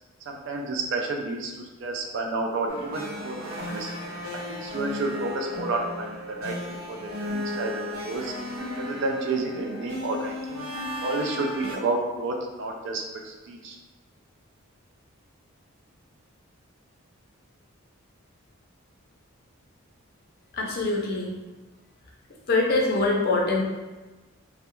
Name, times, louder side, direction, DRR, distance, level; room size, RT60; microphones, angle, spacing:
voice 1, 0.3-1.5 1.8-3.9 4.5-6.6 6.9-8.3 8.8-10.7 11.0-13.8, right 3 dB, 55° right, 2 dB, 0.3 m, -30 dB
sound 1, 2.7-11.8, left 1 dB, 75° right, 0.7 m, -35 dB
voice 2, 20.6-21.3 22.5-23.6, left 2 dB, 45° left, -1 dB, 0.5 m, -23 dB
2.3 x 2.0 x 2.9 m, 1.2 s
head